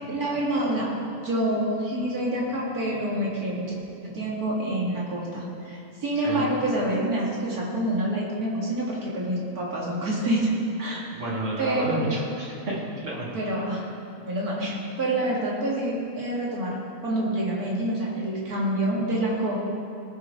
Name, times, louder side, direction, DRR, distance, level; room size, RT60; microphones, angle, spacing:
voice 1, 0.1-0.9 1.2-3.7 4.0-10.5 10.8-11.0 11.6-12.1 13.3-13.8 14.2-16.8 17.0-19.6, right 1 dB, 85° right, -5 dB, 2.9 m, -27 dB
voice 2, 11.1-13.3, right 1 dB, 55° right, -4 dB, 2.3 m, -30 dB
19.0 x 6.6 x 5.1 m, 2.7 s
omnidirectional pair, 1.6 m